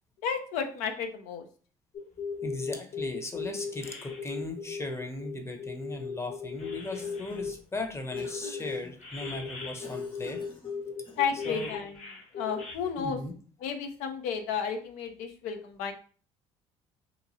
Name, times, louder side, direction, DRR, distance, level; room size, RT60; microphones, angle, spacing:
voice 1, 0.2-1.5 11.2-12.0 12.4-13.2 13.6-15.9, left 6 dB, 75° left, 5 dB, 0.6 m, -32 dB
sound 1, 1.9-7.6 8.1-12.7, left 5 dB, 55° left, 1.0 m, -37 dB
voice 2, 2.4-10.4 11.5-11.7 13.0-13.3, left 2 dB, 20° left, 5 dB, 0.8 m, -37 dB
Cough, 6.6-7.6 8.2-9.0 9.8-11.5, left 2 dB, 40° left, 1.1 m, -50 dB
2.9 x 2.6 x 2.7 m, 0.41 s
supercardioid pair, 70°, 13 cm